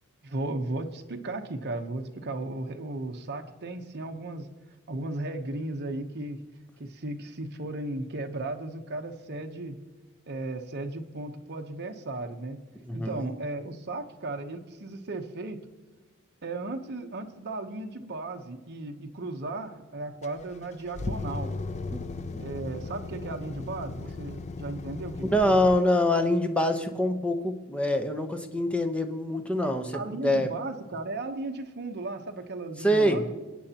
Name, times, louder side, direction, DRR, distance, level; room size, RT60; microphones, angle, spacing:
voice 1, 0.2-4.5 4.9-6.4 6.8-9.8 10.3-12.6 12.9-15.6 16.4-21.6 22.4-25.5 29.9-33.4, right 2 dB, 50° right, 5 dB, 0.9 m, -35 dB
voice 2, 12.9-13.3 21.9-22.0 22.3-22.4 25.2-30.5 32.8-33.3, left 1 dB, 5° left, 6 dB, 0.8 m, -25 dB
sound 1, 20.2-25.8, left 3 dB, 30° left, 0.4 m, -36 dB
26.5 x 9.1 x 2.9 m, 1.3 s
head